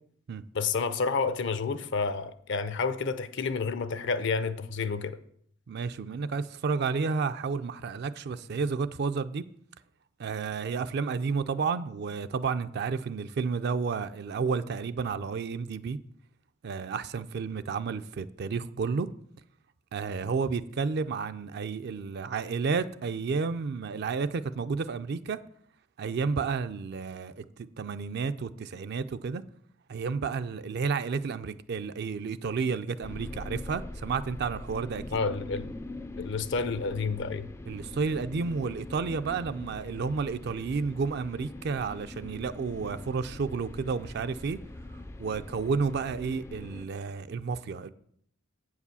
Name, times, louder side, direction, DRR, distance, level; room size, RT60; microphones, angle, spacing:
voice 1, 0.5-5.2 35.1-35.7 36.2-37.5, left 4 dB, 65° left, 0.6 m, -30 dB
voice 2, 5.7-9.5 10.2-16.0 16.6-19.1 19.9-25.4 26.0-29.4 29.9-35.2 37.7-44.6 45.2-47.9, right 5 dB, 55° right, 0.4 m, -31 dB
sound 1, 33.0-46.9, left 2 dB, 15° left, 0.3 m, -43 dB
8.1 x 4.8 x 6.9 m
head